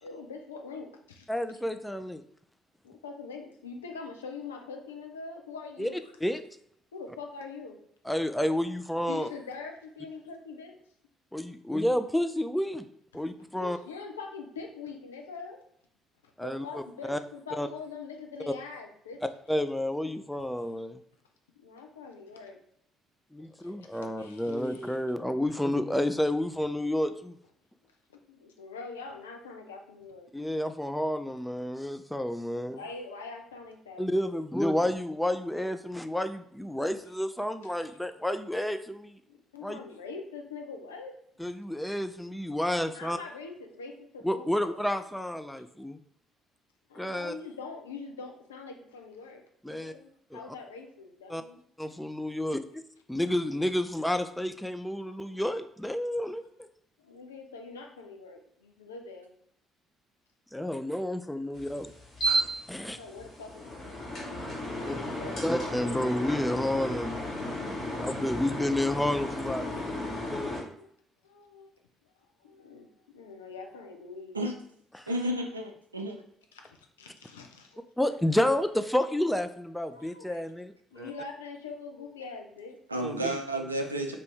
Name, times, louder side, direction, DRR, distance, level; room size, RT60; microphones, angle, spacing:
voice 1, 0.0-1.3 2.8-6.1 6.9-7.8 8.9-10.8 13.3-15.6 16.2-19.2 21.6-22.6 23.6-25.0 28.3-30.3 32.8-34.1 37.6-37.7 39.3-41.2 42.9-45.1 46.9-51.6 52.2-52.5 57.0-59.3 62.8-64.3 64.7-65.4 69.6-70.0 70.4-70.9 71.2-71.7 72.4-74.4 76.5-77.9 79.1-79.2 79.9-80.3 80.9-82.8, left 4 dB, 80° left, 3 dB, 0.4 m, -44 dB
voice 2, 1.3-2.2 5.8-5.9 6.2-6.4 8.1-9.3 11.3-12.9 13.1-13.8 16.4-16.8 17.1-17.2 17.6-17.7 19.5-21.0 23.3-27.4 30.3-32.8 34.0-39.2 39.6-39.8 41.4-43.2 44.2-46.0 47.0-47.3 49.6-49.9 50.3-50.4 51.3-51.4 51.8-52.8 53.1-56.7 60.5-61.9 62.7-63.0 64.9-65.0 65.4-69.7 70.3-70.6 74.9-75.1 78.0-80.7 81.0-81.1 83.0-83.4, left 1 dB, 5° left, 10 dB, 0.3 m, -30 dB
sound 1, 61.5-70.6, equal, 40° left, 1.3 m, -34 dB
voice 3, 75.1-76.2 82.9-84.2, right 1 dB, 85° right, 3 dB, 0.3 m, -31 dB
2.6 x 2.6 x 3.3 m, 0.70 s
figure-of-eight pair, 50°, 0 cm